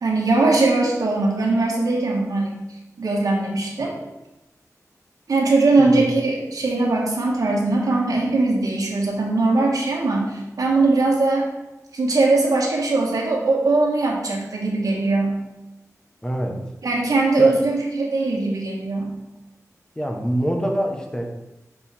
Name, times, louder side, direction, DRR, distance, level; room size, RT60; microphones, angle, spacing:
voice 1, 0.0-2.6 3.0-3.9 5.3-11.5 11.9-15.4 16.8-19.2, right 3 dB, 85° right, -2 dB, 1.2 m, -20 dB
voice 2, 5.8-6.1 16.2-16.6 17.4-17.5 20.0-21.3, equal, 10° left, 2 dB, 0.9 m, -25 dB
5.6 x 4.5 x 4.2 m, 0.98 s
wide cardioid pair, 100°, 6 cm